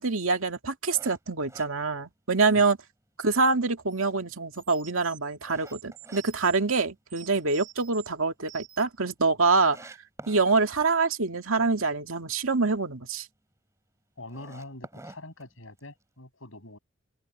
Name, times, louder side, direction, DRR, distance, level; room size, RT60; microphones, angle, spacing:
voice 1, 0.0-2.8 3.2-9.9 10.3-13.3, right 4 dB, 80° right, 2.2 m, -25 dB
sound 1, 0.9-2.6 3.1-3.2 3.7-6.2 6.6-7.4 7.7-7.8 8.2-8.3 8.5-8.6 9.2-9.3 9.6-10.4 14.2-16.0, right 2 dB, 15° right, 3.8 m, -48 dB
sound 2, 3.9-4.0 4.5-6.6 7.1-8.1 8.5-9.0, right 14 dB, 65° right, 6.6 m, -49 dB
voice 2, 14.2-16.8, left 2 dB, 75° left, 6.4 m, -44 dB
head